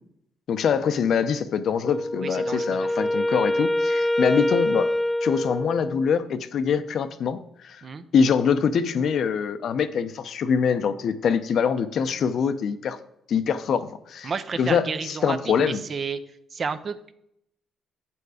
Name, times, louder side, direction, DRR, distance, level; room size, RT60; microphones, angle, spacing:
voice 1, 0.5-4.9 5.2-7.8 8.1-13.0 13.3-14.3 14.6-15.8, left 6 dB, 65° left, 11 dB, 0.7 m, -24 dB
Wind instrument woodwind instrument, 1.8-6.2, left 1 dB, 15° left, 0.7 m, -25 dB
voice 2, 2.2-3.1 7.8-8.0 14.2-16.2 16.5-17.1, right 5 dB, 45° right, 11 dB, 0.7 m, -32 dB
7.9 x 7.0 x 4.9 m, 0.74 s
cardioid pair, 90°, 0 cm